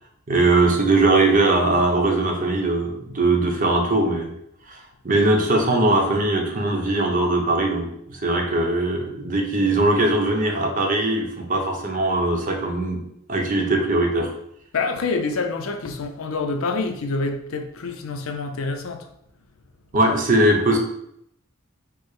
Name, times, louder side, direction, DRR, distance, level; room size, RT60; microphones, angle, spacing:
voice 1, 0.3-4.3 4.7-13.0 13.3-14.3 19.9-20.8, right 2 dB, 40° right, 1 dB, 0.8 m, -20 dB
voice 2, 14.7-19.1, left 3 dB, 75° left, 5 dB, 0.6 m, -27 dB
4.7 x 2.1 x 4.7 m, 0.74 s
head